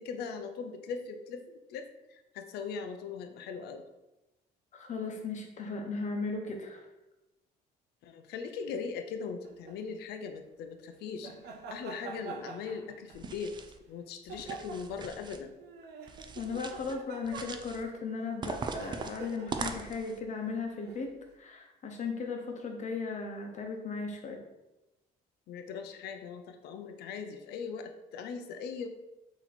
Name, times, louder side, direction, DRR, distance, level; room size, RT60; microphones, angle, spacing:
voice 1, 0.0-1.8 2.1-3.8 8.0-11.3 11.7-13.6 13.9-15.6 25.5-28.9, left 5 dB, 75° left, 6 dB, 0.5 m, -40 dB
voice 2, 4.7-6.8 16.4-21.1 21.4-24.4, left 4 dB, 45° left, 3 dB, 0.9 m, -36 dB
sound 1, 9.4-9.8 11.2-13.3 14.3-15.1 15.6-17.9 18.7-19.9 20.8-21.1, right 5 dB, 75° right, 0.6 m, -45 dB
sound 2, 13.1-13.8 14.3-15.4 16.1-17.0 17.2-17.8 18.4-20.2, right 4 dB, 25° right, 0.4 m, -41 dB
4.1 x 3.0 x 4.2 m, 0.98 s
cardioid pair, 110°, 17 cm